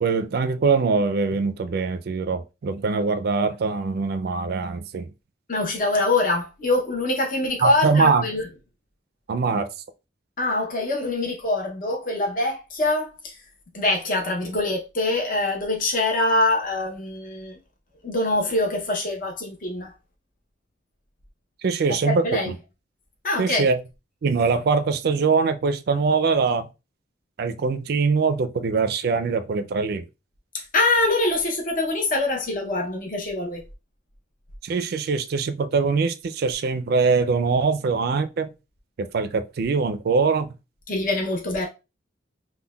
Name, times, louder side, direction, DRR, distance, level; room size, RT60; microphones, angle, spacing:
voice 1, 0.0-5.1 7.6-8.2 9.3-9.7 21.6-22.6 23.4-23.8 24.2-26.7 27.4-30.0 34.6-38.5 39.0-40.5, right 4 dB, 55° right, 0.4 m, -23 dB
voice 2, 5.5-8.5 10.4-13.4 13.7-17.6 18.0-19.9 21.9-22.5 23.2-23.7 30.5-33.6 40.9-41.7, left 2 dB, 45° left, 0.7 m, -24 dB
5.5 x 2.1 x 2.2 m
head